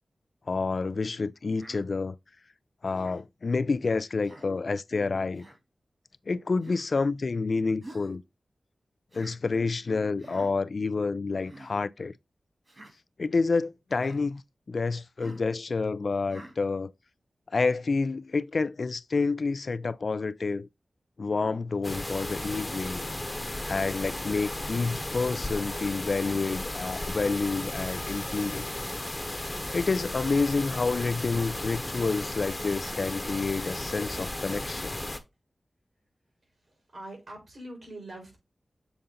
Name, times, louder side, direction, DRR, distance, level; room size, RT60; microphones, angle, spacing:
voice 1, 0.5-2.2 2.8-5.4 6.3-8.2 9.1-12.1 13.2-14.4 14.7-16.9 17.5-20.7 21.2-23.1 23.6-28.7 29.7-35.0, left 4 dB, 60° left, 0.4 m, -29 dB
Human voice, 1.5-1.8 2.9-3.2 4.2-4.5 5.3-5.6 6.6-6.9 7.8-8.2 9.1-9.4 10.2-10.5 11.3-11.7 12.7-12.9 13.9-14.2 15.2-15.5 16.3-16.6, right 1 dB, 45° right, 3.2 m, -48 dB
sound 1, 21.8-35.2, left 1 dB, 15° left, 1.0 m, -35 dB
voice 2, 36.9-38.4, right 1 dB, 60° right, 4.7 m, -43 dB
7.0 x 3.9 x 3.8 m
wide cardioid pair, 75°, 0 cm